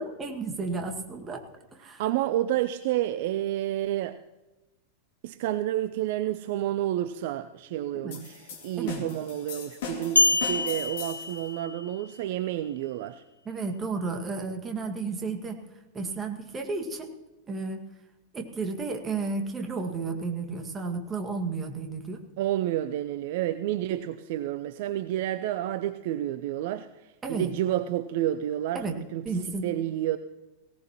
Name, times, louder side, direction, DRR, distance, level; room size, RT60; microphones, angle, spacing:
voice 1, 0.0-1.4 1.7-2.1 7.9-8.2 8.8-9.1 13.5-15.6 15.9-17.1 17.5-17.8 18.3-22.2 27.2-27.5 28.7-29.0 29.2-29.6, right 4 dB, 20° right, 4 dB, 2.0 m, -32 dB
voice 2, 2.0-4.2 5.2-13.2 22.4-26.9 27.3-29.3 29.6-30.2, right 13 dB, 50° right, 13 dB, 0.5 m, -30 dB
sound 1, 8.1-11.4, left 7 dB, 55° left, 3.1 m, -39 dB
sound 2, 10.2-12.0, left 2 dB, 85° left, 0.4 m, -26 dB
19.0 x 17.5 x 3.0 m, 1.1 s
figure-of-eight pair, 90°, 0 cm